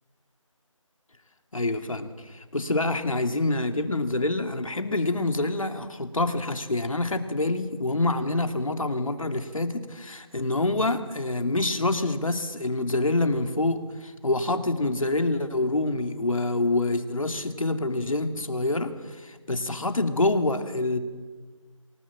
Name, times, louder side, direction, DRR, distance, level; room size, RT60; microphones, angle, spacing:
voice 1, 1.5-21.0, left 2 dB, 75° left, 7 dB, 2.9 m, -26 dB
27.5 x 18.5 x 7.4 m, 1.4 s
figure-of-eight pair, 175°, 17 cm